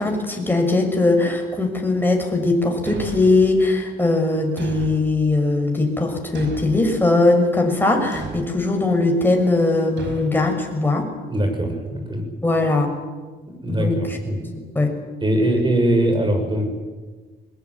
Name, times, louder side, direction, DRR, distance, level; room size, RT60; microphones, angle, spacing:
voice 1, 0.0-11.1 12.4-12.9 13.7-13.9 14.3-14.9, left 2 dB, 10° left, 2 dB, 6.3 m, -20 dB
Thump thud, 2.9-3.5 4.6-5.2 6.4-6.9 8.1-8.5 10.0-10.3, right 5 dB, 65° right, 5.6 m, -34 dB
voice 2, 11.3-12.2 13.6-14.4 15.2-16.7, right 1 dB, 25° right, 5 dB, 7.1 m, -21 dB
22.0 x 20.5 x 9.8 m, 1.3 s
cardioid pair, 90°, 20 cm